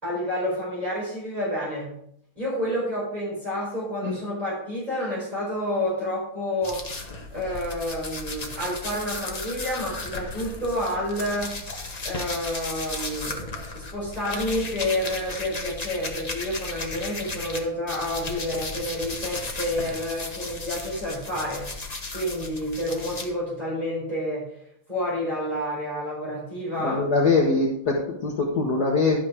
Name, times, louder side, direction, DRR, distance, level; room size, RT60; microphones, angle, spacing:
voice 1, 0.0-1.9 2.4-6.9 7.3-11.6 12.0-24.5 24.9-27.0, left 1 dB, 20° right, -7 dB, 4.5 m, -29 dB
sound 1, 6.6-17.6 17.9-23.3, left 3 dB, 30° left, 0.8 m, -35 dB
voice 2, 26.8-29.2, left 3 dB, 55° left, -1 dB, 1.6 m, -23 dB
12.0 x 6.0 x 4.9 m, 0.70 s
omnidirectional pair, 2.3 m